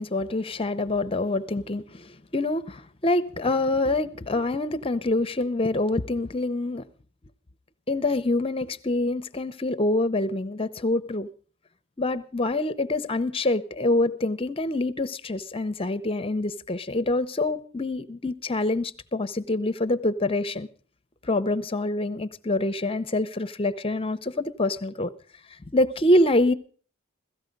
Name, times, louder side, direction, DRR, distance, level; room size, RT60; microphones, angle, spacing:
voice 1, 0.0-6.8 7.9-11.3 12.0-20.7 21.2-25.1 25.7-26.5, left 2 dB, 25° left, 0.6 m, -26 dB
16.5 x 14.5 x 5.3 m
head